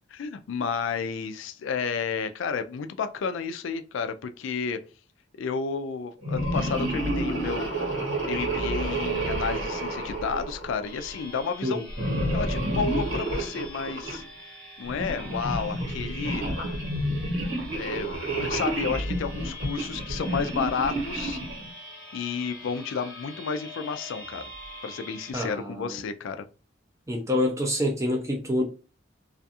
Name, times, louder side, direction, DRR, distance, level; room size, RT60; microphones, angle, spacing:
voice 1, 0.1-4.8 5.4-7.7 8.2-11.9 12.3-14.2 14.8-16.4 17.7-21.4 22.1-24.4 24.8-26.4, left 5 dB, 75° left, 0.3 m, -31 dB
sound 1, 6.2-11.1 11.9-14.2 14.9-21.7, right 1 dB, 85° right, 1.3 m, -29 dB
sound 2, 10.8-25.3, left 1 dB, 5° left, 0.8 m, -44 dB
voice 2, 25.3-26.0 27.1-28.6, left 1 dB, 15° right, 0.4 m, -27 dB
2.4 x 2.3 x 2.7 m
head